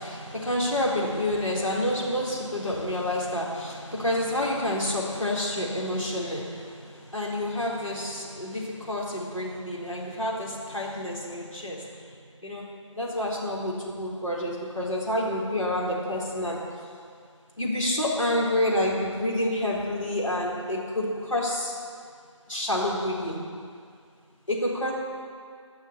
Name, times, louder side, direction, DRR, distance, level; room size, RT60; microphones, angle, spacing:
voice 1, 0.0-12.6 12.9-16.6 17.6-21.7 22.5-23.4 24.5-24.9, left 1 dB, 90° left, -4 dB, 4.1 m, -28 dB
15.0 x 6.4 x 8.9 m, 2.2 s
figure-of-eight pair, 165°, 16 cm